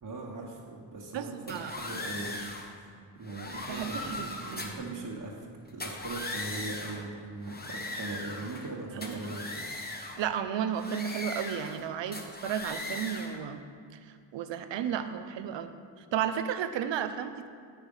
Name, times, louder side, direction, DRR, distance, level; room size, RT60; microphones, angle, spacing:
voice 1, 0.0-5.5 5.7-9.7, right 2 dB, 45° right, -4 dB, 1.3 m, -40 dB
voice 2, 1.1-1.8 3.7-4.7 8.9-9.3 10.2-13.6 14.0-17.5, right 8 dB, 75° right, 9 dB, 0.6 m, -33 dB
sound 1, 1.5-2.7 3.2-4.9 5.7-7.1 7.4-8.7 9.0-10.2 10.8-11.8 12.1-13.4, left 2 dB, 20° left, 1.1 m, -39 dB
8.8 x 5.0 x 5.4 m, 2.2 s
cardioid pair, 50°, 44 cm